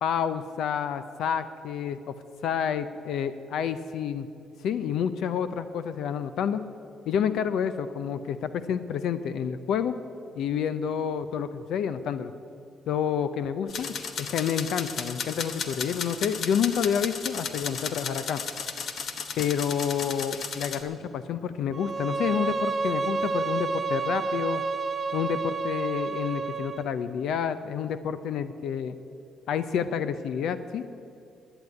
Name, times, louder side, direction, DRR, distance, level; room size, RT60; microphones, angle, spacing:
voice 1, 0.0-2.1 2.4-4.3 4.6-6.6 7.1-9.9 10.4-12.3 12.9-18.4 19.4-24.6 25.1-29.0 29.5-30.8, left 8 dB, 80° left, 12 dB, 0.5 m, -29 dB
sound 1, 13.7-20.8, left 6 dB, 60° left, 1.0 m, -34 dB
Bowed string instrument, 21.7-26.9, right 4 dB, 35° right, 0.6 m, -29 dB
11.5 x 8.0 x 9.5 m, 2.6 s
cardioid pair, 90°, 0 cm